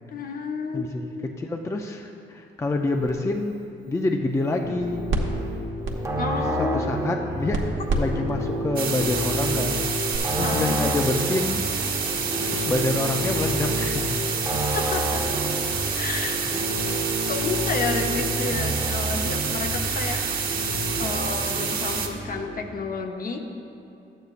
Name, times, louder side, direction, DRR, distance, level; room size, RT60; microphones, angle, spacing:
voice 1, 0.1-0.8 6.2-6.9 10.4-10.8 14.7-15.2 15.9-16.4 17.3-20.2 21.0-23.4, left 4 dB, 45° left, 4 dB, 0.8 m, -30 dB
voice 2, 0.7-1.1 1.4-3.6 3.9-5.0 6.6-9.8 10.3-12.2 12.5-14.2 14.7-14.9, left 2 dB, 15° left, 3 dB, 0.4 m, -27 dB
sound 1, 2.6-10.2, right 2 dB, 70° right, 1.0 m, -34 dB
sound 2, 4.6-22.7, equal, 15° right, 0.9 m, -30 dB
sound 3, 8.8-22.1, right 6 dB, 45° right, 1.4 m, -28 dB
11.5 x 8.0 x 2.5 m, 2.7 s
cardioid pair, 90°, 20 cm